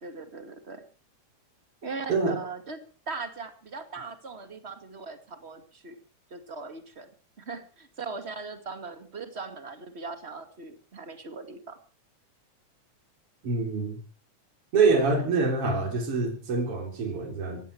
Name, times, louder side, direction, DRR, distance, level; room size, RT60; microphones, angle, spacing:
voice 1, 0.0-0.8 1.8-6.0 6.3-7.1 7.4-11.8 15.1-15.2, right 4 dB, 25° right, 8 dB, 2.1 m, -39 dB
voice 2, 13.4-14.0 14.7-17.6, right 4 dB, 45° right, 3 dB, 4.7 m, -25 dB
19.0 x 15.5 x 4.7 m, 0.39 s
omnidirectional pair, 3.5 m